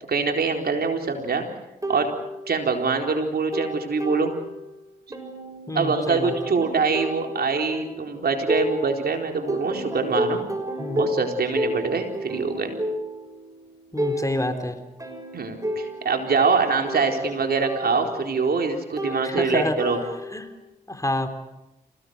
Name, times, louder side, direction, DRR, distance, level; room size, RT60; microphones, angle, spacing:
voice 1, 0.1-1.5 1.9-2.1 2.5-4.3 5.7-10.5 10.9-12.7 15.3-20.0, right 4 dB, 60° right, 3 dB, 4.2 m, -24 dB
sound 1, 1.8-2.9 3.2-4.8 5.1-9.1 9.5-20.5, right 1 dB, 20° right, 6.4 m, -32 dB
voice 2, 5.7-6.3 10.8-11.0 13.9-14.8 19.1-19.8 20.3-20.5 20.9-21.3, left 1 dB, 20° left, 8 dB, 3.8 m, -28 dB
27.5 x 18.0 x 8.2 m, 0.96 s
supercardioid pair, 40°, 18 cm